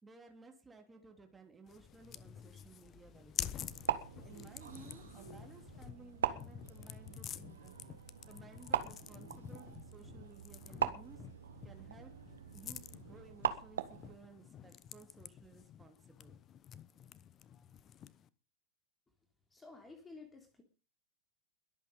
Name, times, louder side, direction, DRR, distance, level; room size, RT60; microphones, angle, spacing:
voice 1, 0.0-3.8 4.2-7.8 8.2-11.3 11.6-12.2 12.5-16.3, right 3 dB, 10° right, 4 dB, 3.2 m, -58 dB
sound 1, 1.7-18.3, left 9 dB, 30° left, 1.0 m, -49 dB
sound 2, 3.6-14.1, right 8 dB, 65° right, 1.7 m, -41 dB
voice 2, 19.5-20.6, left 3 dB, 15° left, 5 dB, 3.4 m, -53 dB
22.0 x 8.5 x 5.5 m, 0.35 s
figure-of-eight pair, 90°, 0 cm